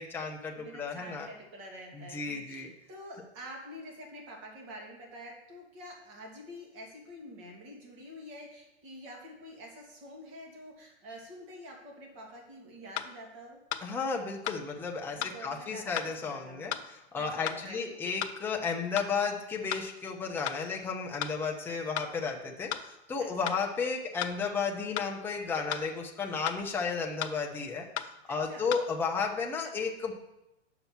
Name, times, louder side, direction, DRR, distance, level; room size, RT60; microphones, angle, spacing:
voice 1, 0.0-1.3 1.9-2.7 13.8-27.9 28.3-30.1, left 5 dB, 5° left, 0 dB, 0.7 m, -33 dB
voice 2, 0.6-13.6 15.1-16.8 17.1-18.0 23.2-23.6 28.3-28.7, equal, 35° right, 0 dB, 2.6 m, -47 dB
sound 1, 12.3-12.4 13.0-13.1 13.7-13.8 14.5-14.6 15.2-15.4 16.0-16.1 16.7-16.8 17.5-17.6 18.2-18.4 19.0-19.1 19.7-19.9 20.5-20.6 21.2-21.3 22.0-22.1 22.7-22.9 23.5-23.6 24.2-24.4 25.0-25.1 25.7-25.9 26.5-26.6 27.2-27.4 28.0-28.1 28.7-28.8, left 11 dB, 70° left, 0.8 m, -34 dB
6.9 x 6.0 x 7.0 m, 0.92 s
hypercardioid pair, 145°, 35 cm